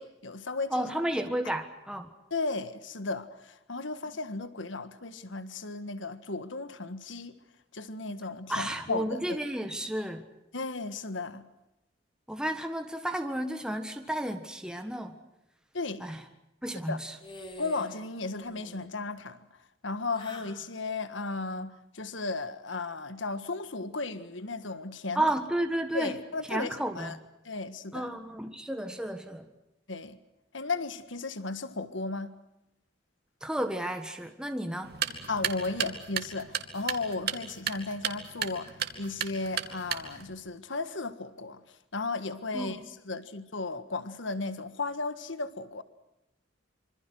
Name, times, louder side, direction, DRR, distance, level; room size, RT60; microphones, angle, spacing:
voice 1, 0.0-0.9 2.3-7.3 7.7-9.2 10.5-11.5 15.7-16.1 16.9-17.0 17.6-19.5 19.8-25.3 25.9-27.2 27.5-28.1 29.9-30.2 30.5-32.3 35.3-41.6 41.9-42.8 43.1-45.8, left 3 dB, 75° left, 1.6 m, -35 dB
voice 2, 0.7-2.1 8.5-10.3 12.3-15.2 16.0-16.2 16.6-17.1 25.1-26.2 26.5-27.2 27.9-29.5 33.4-35.0 42.5-42.8, right 1 dB, 5° right, 1.5 m, -32 dB
sound 1, 17.2-18.0 18.3-18.9 20.1-20.6, left 1 dB, 25° left, 4.4 m, -46 dB
sound 2, 34.8-40.3, right 8 dB, 55° right, 2.5 m, -35 dB
26.5 x 26.0 x 6.2 m
head